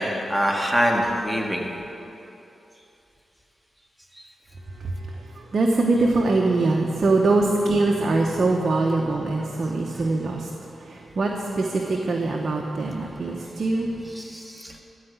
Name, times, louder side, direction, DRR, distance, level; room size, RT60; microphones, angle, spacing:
voice 1, 0.0-1.7 4.1-4.3 14.0-14.8, equal, ahead, 0 dB, 1.7 m, -25 dB
voice 2, 4.8-10.5 10.8-13.9, right 3 dB, 60° right, 0 dB, 0.9 m, -23 dB
13.0 x 4.9 x 8.1 m, 2.9 s
cardioid pair, 50°, 0 cm